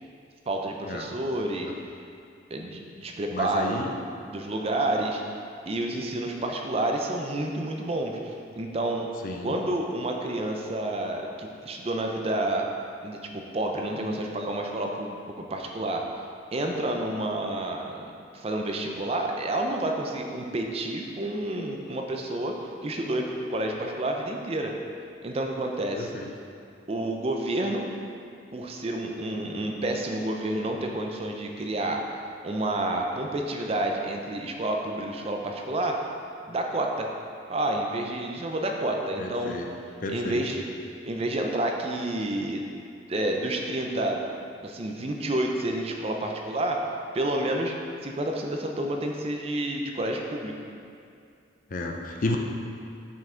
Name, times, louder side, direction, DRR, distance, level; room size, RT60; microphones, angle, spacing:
voice 1, 0.5-1.7 2.5-4.0 4.2-5.2 5.7-9.1 9.4-12.7 13.0-16.0 16.5-18.0 18.3-24.7 25.2-26.1 26.9-27.9 28.5-32.0 32.4-36.0 36.5-37.1 37.5-39.6 40.1-40.7 41.0-42.6 43.1-44.2 44.6-46.8 47.1-47.8 48.0-50.5, right 1 dB, 30° right, 2 dB, 0.4 m, -29 dB
voice 2, 3.3-3.9 9.2-9.6 26.0-26.3 39.2-39.7 40.0-40.4 51.7-52.4, left 2 dB, 45° left, 2 dB, 0.5 m, -32 dB
5.8 x 5.5 x 3.7 m, 2.4 s
head